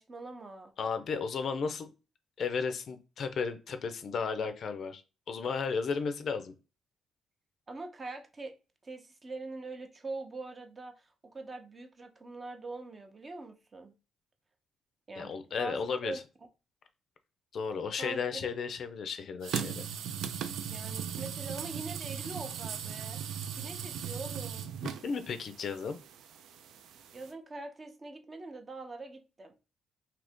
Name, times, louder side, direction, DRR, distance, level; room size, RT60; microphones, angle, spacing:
voice 1, 0.0-0.7 7.7-8.5 8.8-13.9 15.1-16.2 18.0-18.5 20.7-23.2 23.6-24.7 27.1-29.5, right 3 dB, 30° right, 0.6 m, -43 dB
voice 2, 0.8-1.9 2.4-5.0 5.3-6.5 15.2-16.2 17.5-19.8 24.8-26.0, left 5 dB, 60° left, 0.4 m, -34 dB
sound 1, 19.4-27.3, right 8 dB, 80° right, 0.3 m, -38 dB
2.8 x 2.5 x 3.5 m
cardioid pair, 90°, 0 cm